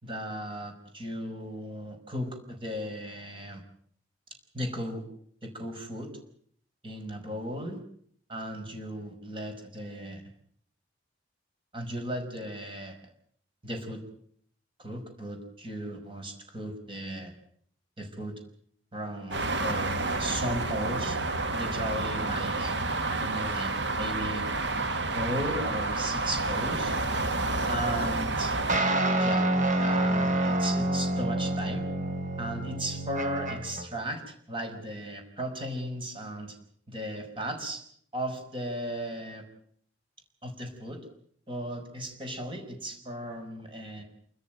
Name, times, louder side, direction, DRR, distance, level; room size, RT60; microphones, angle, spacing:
voice 1, 0.0-3.6 4.5-5.1 5.4-6.1 6.8-7.8 8.3-10.2 11.7-13.0 13.6-14.0 14.8-17.3 18.0-18.3 18.9-19.9 20.2-21.2 21.5-22.7 23.1-24.5 25.1-26.9 27.7-28.6 29.2-29.4 29.8-31.9 32.4-36.5 36.9-37.8 38.1-39.4 40.4-41.0 41.5-44.0, equal, 30° right, 4 dB, 5.4 m, -36 dB
sound 1, 19.3-28.8, right 2 dB, 75° right, 1.9 m, -29 dB
sound 2, 28.7-33.9, right 1 dB, 45° right, 3.4 m, -27 dB
28.5 x 14.5 x 9.2 m, 0.63 s
head